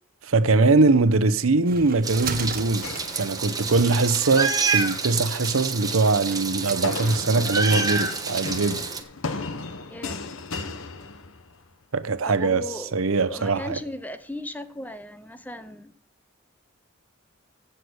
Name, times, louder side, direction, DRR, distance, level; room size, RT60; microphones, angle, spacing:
voice 1, 0.2-2.9 3.2-8.8 11.9-12.6 12.9-13.7, right 3 dB, 85° right, 0.8 m, -22 dB
sound 1, 1.1-8.5, right 4 dB, 45° right, 1.2 m, -40 dB
Meow, 2.0-9.0, right 5 dB, 20° right, 1.1 m, -28 dB
sound 2, 2.8-3.9 4.6-5.1 6.8-11.7, left 4 dB, 80° left, 1.1 m, -35 dB
voice 2, 9.9-10.2 12.3-15.9, left 1 dB, 10° left, 0.7 m, -37 dB
16.0 x 6.9 x 6.4 m
head